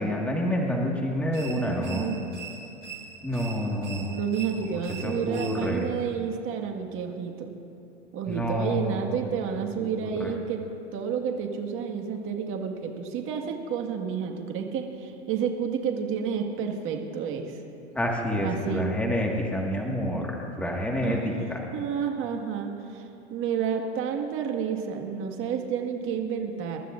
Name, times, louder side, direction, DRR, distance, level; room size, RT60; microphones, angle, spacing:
voice 1, 0.0-2.1 3.2-4.1 5.0-5.8 8.3-9.2 9.8-10.3 17.9-21.7, equal, 5° left, -1 dB, 1.8 m, -28 dB
sound 1, 1.3-5.9, right 6 dB, 80° right, 2.9 m, -43 dB
voice 2, 1.6-2.3 4.1-7.5 8.1-10.6 10.9-17.6 18.4-18.9 20.1-20.3 21.0-26.8, right 7 dB, 35° right, 3 dB, 1.8 m, -30 dB
28.0 x 12.5 x 2.6 m, 2.7 s
hypercardioid pair, 115°, 35 cm